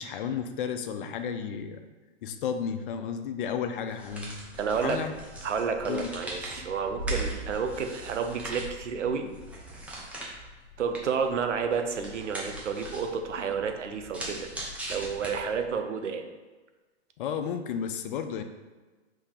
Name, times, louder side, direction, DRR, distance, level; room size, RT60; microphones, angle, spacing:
voice 1, 0.0-1.8 2.2-4.4 4.7-5.1 5.9-6.2 17.2-18.4, left 7 dB, 50° left, 8 dB, 0.5 m, -32 dB
sound 1, 3.9-15.7, right 1 dB, 5° right, 0.5 m, -40 dB
voice 2, 4.6-5.0 5.4-9.3 10.8-14.5 14.9-16.2, right 6 dB, 90° right, 6 dB, 0.7 m, -30 dB
5.1 x 2.7 x 3.8 m, 1.3 s
hypercardioid pair, 130°, 35 cm